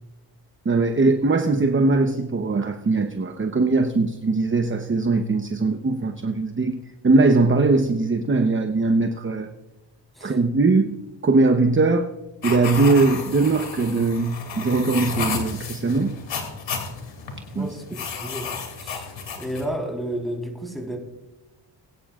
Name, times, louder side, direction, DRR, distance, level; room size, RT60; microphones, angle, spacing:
voice 1, 0.6-6.8 7.0-9.5 10.2-11.0 11.2-12.1 12.4-16.1 17.6-17.7, right 3 dB, 25° right, 7 dB, 0.9 m, -20 dB
sound 1, 12.4-19.7, left 5 dB, 80° left, 2.7 m, -32 dB
voice 2, 17.5-19.1 19.4-21.0, right 1 dB, ahead, 1 dB, 3.9 m, -32 dB
21.0 x 9.8 x 2.4 m, 1.0 s
cardioid pair, 75°, 44 cm